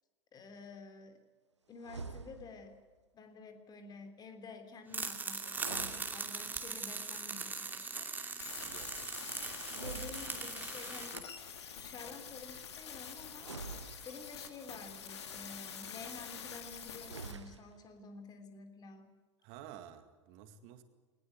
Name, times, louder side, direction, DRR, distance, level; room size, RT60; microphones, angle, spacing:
voice 1, 0.3-1.2 1.7-2.8 3.1-8.1 9.3-11.2 11.8-13.5 14.0-19.1, left 3 dB, 25° left, 8 dB, 3.3 m, -50 dB
sound 1, 1.8-2.7 5.4-6.8 9.7-10.8 13.3-14.6 16.9-17.9, right 4 dB, 80° right, 1.1 m, -47 dB
sound 2, 4.9-11.2, right 4 dB, 10° right, 2.6 m, -40 dB
sound 3, 8.4-17.3, left 7 dB, 70° left, 2.5 m, -46 dB
voice 2, 8.5-9.4 19.4-20.8, right 10 dB, 45° right, 9 dB, 2.1 m, -53 dB
21.0 x 20.0 x 8.2 m, 1.4 s
figure-of-eight pair, 85°, 15 cm